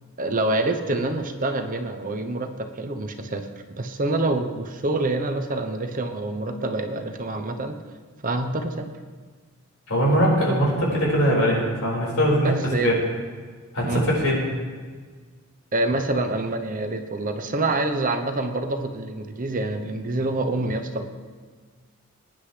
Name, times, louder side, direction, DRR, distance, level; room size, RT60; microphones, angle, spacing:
voice 1, 0.2-7.8 8.2-8.9 12.4-12.9 13.8-14.0 15.7-21.0, right 2 dB, 40° right, 6 dB, 0.8 m, -26 dB
voice 2, 9.9-12.6 12.8-12.9 13.7-14.4, equal, 80° left, -4 dB, 4.8 m, -21 dB
21.5 x 10.0 x 3.3 m, 1.5 s
head